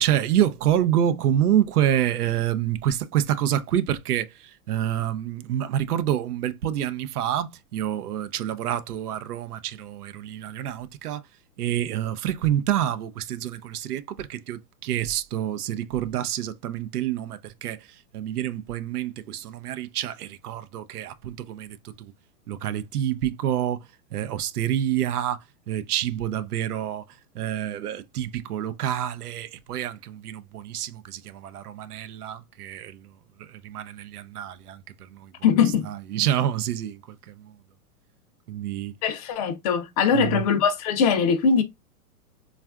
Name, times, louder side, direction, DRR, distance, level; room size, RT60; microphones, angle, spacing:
voice 1, 0.0-11.2 11.6-17.9 18.1-22.1 22.5-23.8 24.1-27.0 27.4-33.0 33.5-34.8 35.1-35.3 35.9-37.3 38.5-38.9 40.1-40.4, right 11 dB, 90° right, 0.5 m, -27 dB
voice 2, 35.4-35.9 39.0-41.6, left 6 dB, 25° left, 0.4 m, -21 dB
3.4 x 2.4 x 2.3 m
hypercardioid pair, 130°, 44 cm